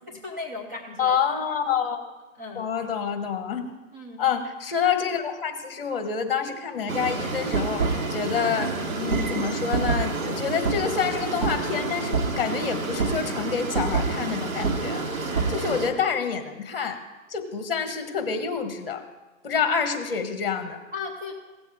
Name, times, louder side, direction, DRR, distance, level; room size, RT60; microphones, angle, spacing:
voice 1, 0.1-1.1 2.3-2.7 3.9-4.2 20.9-21.3, left 4 dB, 15° right, -3 dB, 0.7 m, -36 dB
voice 2, 1.0-2.0 2.5-3.7 4.2-15.0 15.5-17.0 17.3-19.0 19.4-20.8, left 6 dB, 45° left, 7 dB, 1.4 m, -27 dB
sound 1, 6.9-15.9, right 3 dB, 80° right, 1.9 m, -27 dB
16.5 x 7.0 x 3.6 m, 1.1 s
hypercardioid pair, 165°, 41 cm